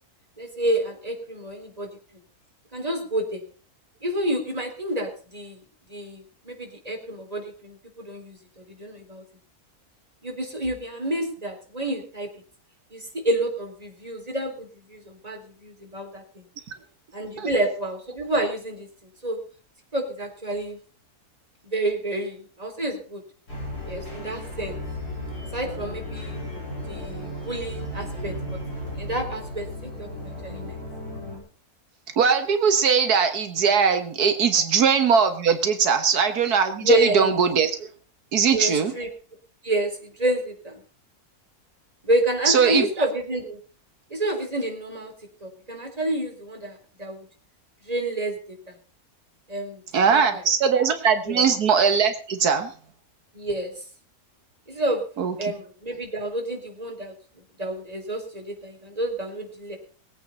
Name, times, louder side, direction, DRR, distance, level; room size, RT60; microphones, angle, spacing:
voice 1, 0.4-1.9 2.7-3.4 4.0-5.6 5.9-9.2 10.2-12.3 12.9-16.4 17.1-18.9 19.2-19.4 19.9-20.8 21.6-23.2 23.9-24.8 25.5-26.4 26.9-28.6 28.9-30.8 36.8-37.3 38.5-39.1 39.6-40.8 42.0-43.6 44.1-45.1 45.4-47.3 47.8-48.4 48.7-48.8 49.5-49.8 50.1-50.4 50.8-50.9 51.3-51.5 53.3-53.7 54.7-55.0 55.4-57.1 57.6-59.8, right 1 dB, 25° right, 2 dB, 3.8 m, -29 dB
sound 1, 23.5-31.4, left 1 dB, 90° left, 8.0 m, -35 dB
voice 2, 32.2-37.7 38.3-38.9 42.5-42.9 49.9-52.7 55.2-55.3, right 6 dB, 85° right, 8 dB, 1.8 m, -20 dB
20.5 x 8.9 x 5.5 m, 0.40 s
omnidirectional pair, 1.6 m